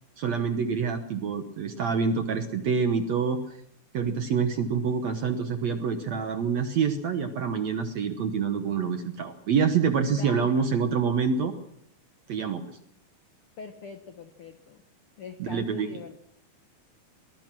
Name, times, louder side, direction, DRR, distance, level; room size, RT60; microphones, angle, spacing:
voice 1, 0.2-3.6 3.9-11.5 12.3-12.6 15.4-15.9, right 6 dB, 70° right, 8 dB, 1.7 m, -26 dB
voice 2, 10.1-10.5 13.6-14.8 15.2-16.2, left 5 dB, 85° left, 8 dB, 1.2 m, -43 dB
23.5 x 19.5 x 6.1 m, 0.74 s
omnidirectional pair, 4.5 m